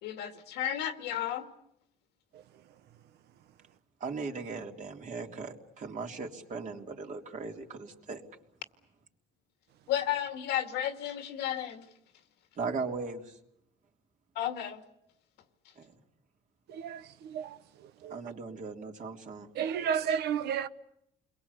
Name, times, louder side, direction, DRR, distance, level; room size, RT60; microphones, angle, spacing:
voice 1, 0.0-1.5 9.9-11.9 14.4-14.8, left 11 dB, 90° left, 2.3 m, -33 dB
voice 2, 4.0-8.2 12.6-13.3 15.8-15.9 18.1-19.5, right 4 dB, 50° right, 3.3 m, -38 dB
voice 3, 19.6-20.7, right 8 dB, 75° right, 1.1 m, -31 dB
29.5 x 22.0 x 8.2 m
cardioid pair, 110°, 17 cm